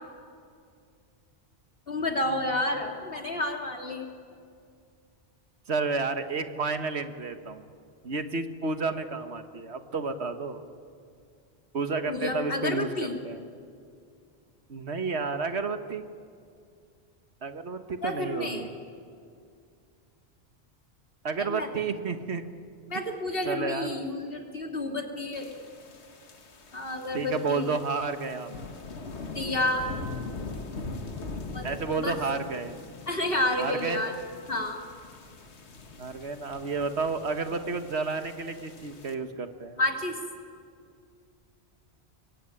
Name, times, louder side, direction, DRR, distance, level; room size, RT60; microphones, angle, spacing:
voice 1, 1.9-4.0 12.1-13.1 18.0-18.7 21.4-21.7 22.9-25.5 26.7-27.7 29.3-29.9 31.5-31.6 32.0-32.2 33.1-34.1 34.5-34.8 39.8-40.2, left 1 dB, 60° left, 2 dB, 3.2 m, -30 dB
voice 2, 5.7-7.7 8.0-10.6 11.7-13.5 14.7-16.0 17.4-18.7 21.2-22.4 23.4-24.0 27.1-28.5 31.6-32.8 33.6-34.1 36.0-39.8, right 4 dB, 80° right, 8 dB, 1.7 m, -31 dB
sound 1, 25.3-39.1, left 3 dB, 85° left, 1.9 m, -42 dB
25.0 x 22.5 x 9.8 m, 2.3 s
omnidirectional pair, 1.1 m